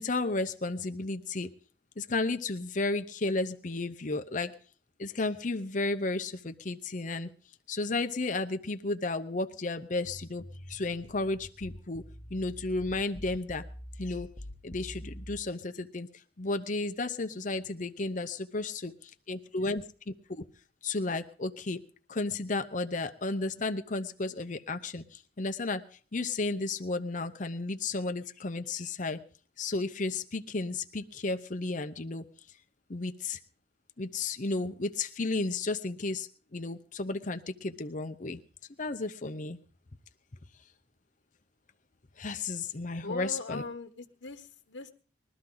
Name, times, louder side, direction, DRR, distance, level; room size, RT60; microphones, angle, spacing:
voice 1, 0.0-1.5 2.0-4.6 5.0-7.3 7.7-12.0 12.3-13.6 14.0-14.3 14.6-20.4 20.8-21.8 22.1-25.8 26.1-29.2 29.6-32.2 32.9-33.4 34.0-38.4 38.8-39.6 42.2-43.6, left 3 dB, 40° left, 8 dB, 0.8 m, -33 dB
sound 1, 10.0-15.4, equal, 25° left, 1.1 m, -45 dB
voice 2, 43.0-44.9, left 3 dB, 80° left, 4 dB, 1.3 m, -40 dB
21.0 x 13.0 x 3.9 m, 0.42 s
head